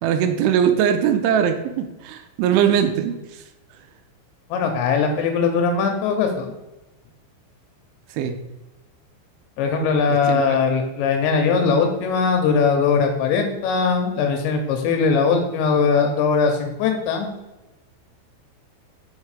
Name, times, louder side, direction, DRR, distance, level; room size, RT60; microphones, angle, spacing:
voice 1, 0.0-3.4 8.1-8.4 10.3-10.6, right 8 dB, 85° right, 7 dB, 2.9 m, -21 dB
voice 2, 4.5-6.5 9.6-17.3, left 5 dB, 80° left, 4 dB, 2.8 m, -20 dB
6.3 x 5.6 x 4.8 m, 1.0 s
omnidirectional pair, 5.6 m